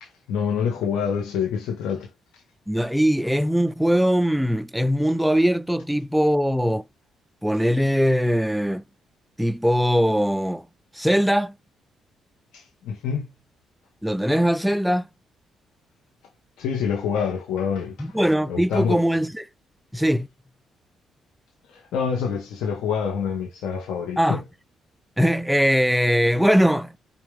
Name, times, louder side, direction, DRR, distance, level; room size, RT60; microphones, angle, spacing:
voice 1, 0.0-2.1 12.5-13.3 16.6-18.1 18.5-19.0 21.7-24.4, left 7 dB, 85° left, 1.9 m, -26 dB
voice 2, 2.7-6.8 7.4-8.8 9.4-10.6 10.9-11.5 14.0-15.1 18.0-19.5 19.9-20.3 24.2-24.4 25.2-26.9, equal, ahead, 0.4 m, -21 dB
5.8 x 5.3 x 3.4 m
cardioid pair, 90°, 0 cm